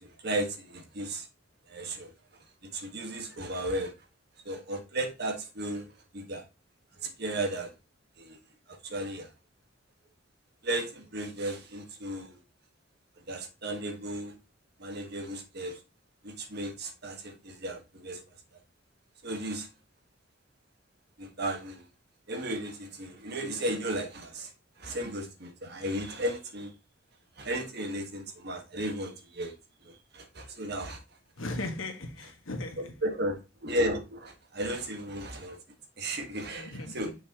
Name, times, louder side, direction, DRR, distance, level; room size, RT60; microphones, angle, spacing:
voice 1, 0.0-1.3 1.7-2.1 2.7-3.9 4.4-6.4 7.0-7.7 8.2-8.4 8.7-9.3 10.6-12.4 13.3-14.4 14.8-15.8 16.2-18.2 19.2-19.7 21.2-21.8 22.3-24.5 24.8-26.7 27.4-29.6 29.8-31.0 33.0-35.6 36.0-37.1, right 1 dB, 50° right, 1.5 m, -34 dB
voice 2, 31.4-32.9 36.6-37.2, left 2 dB, 75° left, 1.6 m, -37 dB
6.6 x 5.6 x 3.0 m
head